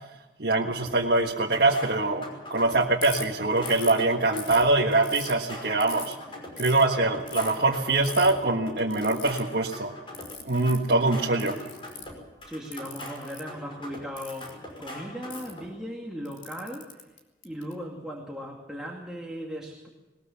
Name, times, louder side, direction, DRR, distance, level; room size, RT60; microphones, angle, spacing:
voice 1, 0.4-6.1 6.6-9.9 10.4-11.6, right 2 dB, 60° right, -2 dB, 1.6 m, -24 dB
sound 1, 0.8-15.7, left 1 dB, 30° left, 5.6 m, -43 dB
Ratchet pawl, 3.0-3.2 3.7-4.0 4.4-5.3 5.8-6.1 6.6-6.8 7.3-7.5 8.0-8.3 8.9-9.4 10.1-10.8 11.4-12.2 12.7-13.4 14.2-14.5 15.3-15.5 16.2-17.7, left 6 dB, 45° left, 3.3 m, -39 dB
voice 2, 12.4-17.2 17.4-19.9, equal, 5° right, -1 dB, 2.3 m, -38 dB
20.5 x 20.5 x 7.2 m, 1.1 s
head